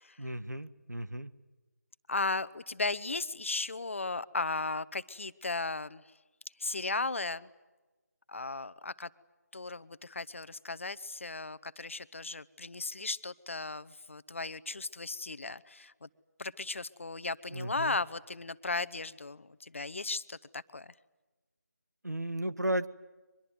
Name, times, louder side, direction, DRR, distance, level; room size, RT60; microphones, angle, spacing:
voice 1, 0.2-1.3 17.5-17.9 22.0-22.9, right 1 dB, 85° right, 12 dB, 1.6 m, -34 dB
voice 2, 2.1-6.0 6.6-7.5 8.3-9.1 9.5-16.1 16.4-20.9, left 3 dB, 50° left, 16 dB, 1.0 m, -36 dB
24.0 x 21.5 x 9.5 m, 1.2 s
figure-of-eight pair, 160°, 9 cm